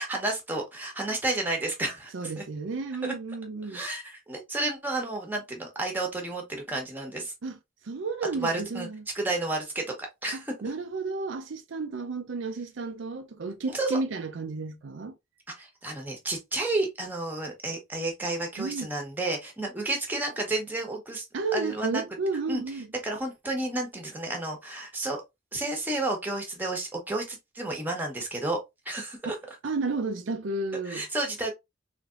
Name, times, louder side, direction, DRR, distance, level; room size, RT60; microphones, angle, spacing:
voice 1, 0.0-2.4 3.0-3.1 3.7-7.3 8.4-8.9 9.1-10.0 10.2-10.5 13.7-14.0 15.6-21.2 21.5-22.0 22.5-22.6 23.0-25.2 25.5-28.6 28.8-29.4 30.8-31.5, right 2 dB, 10° right, 1.1 m, -31 dB
voice 2, 2.1-3.8 7.4-7.6 7.8-9.0 10.3-15.1 18.6-18.9 21.3-22.9 29.6-31.0, right 3 dB, 70° right, 0.5 m, -32 dB
3.5 x 3.3 x 2.4 m
head